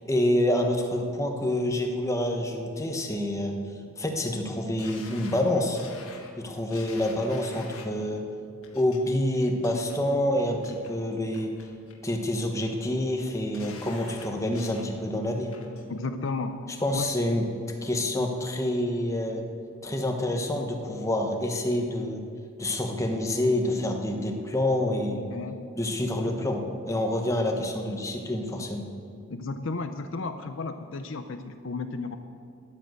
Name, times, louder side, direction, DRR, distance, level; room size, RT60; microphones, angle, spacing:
voice 1, 0.0-3.6 4.0-5.8 6.4-8.2 8.7-11.5 12.0-15.5 16.8-17.5 17.8-19.4 19.8-22.2 22.6-25.3 25.8-28.9, left 1 dB, 15° left, 3 dB, 1.1 m, -27 dB
sound 1, 4.8-8.0 8.6-9.0 9.4-10.0 10.4-10.9 11.3-12.0 12.3-12.9 13.3-14.9 15.3-15.9 16.3-16.4, left 5 dB, 80° left, 1.5 m, -48 dB
voice 2, 15.9-16.6 16.9-17.1 25.3-25.7 29.3-32.2, left 3 dB, 65° left, 9 dB, 0.6 m, -33 dB
10.5 x 9.9 x 7.7 m, 2.4 s
head